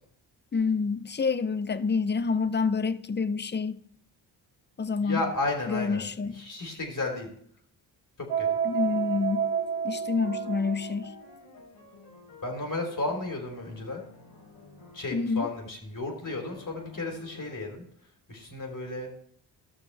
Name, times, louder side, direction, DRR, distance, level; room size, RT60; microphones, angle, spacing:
voice 1, 0.5-3.8 4.8-5.2 5.7-6.4 8.6-9.5 9.8-11.1 15.1-15.5, left 4 dB, 25° left, 0.6 m, -28 dB
voice 2, 5.0-6.1 6.3-7.3 8.2-8.5 12.4-14.0 14.9-17.8 18.3-19.1, left 2 dB, 40° left, 3.3 m, -33 dB
sound 1, 8.3-11.1, right 8 dB, 90° right, 1.6 m, -30 dB
sound 2, 10.2-15.4 16.2-17.7, left 3 dB, 60° left, 3.5 m, -51 dB
14.5 x 6.4 x 3.2 m
supercardioid pair, 50°, 47 cm